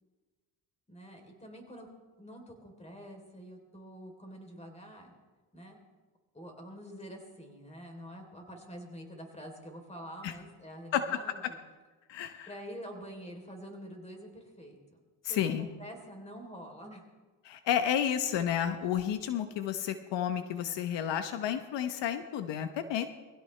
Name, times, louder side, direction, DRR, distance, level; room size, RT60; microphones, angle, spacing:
voice 1, 0.9-1.9 2.2-5.1 5.5-5.8 6.3-11.6 12.5-14.8 15.3-17.0, equal, 15° left, 3 dB, 3.5 m, -46 dB
voice 2, 12.1-12.5 15.2-15.7 17.4-23.1, left 9 dB, 75° left, 9 dB, 1.0 m, -31 dB
22.5 x 16.5 x 3.3 m, 1.3 s
cardioid pair, 105°, 43 cm